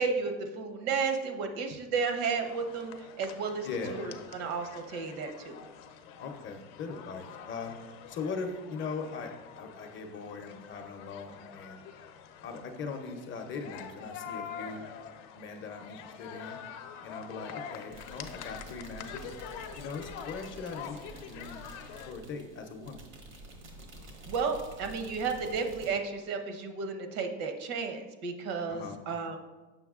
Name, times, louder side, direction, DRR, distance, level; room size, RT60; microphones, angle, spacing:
voice 1, 0.0-2.9 3.2-5.6 24.3-29.4, right 5 dB, 65° right, 6 dB, 0.8 m, -33 dB
sound 1, 2.3-22.1, left 7 dB, 75° left, 0.6 m, -46 dB
voice 2, 3.6-4.0 6.2-7.7 8.1-11.8 12.4-14.8 15.4-16.6 17.0-19.3 19.8-21.6 22.1-23.0 28.7-29.0, left 4 dB, 35° left, 4 dB, 0.6 m, -40 dB
sound 2, 17.9-25.9, right 1 dB, 90° right, 1.5 m, -49 dB
7.0 x 5.7 x 2.4 m, 1.2 s
supercardioid pair, 130°, 36 cm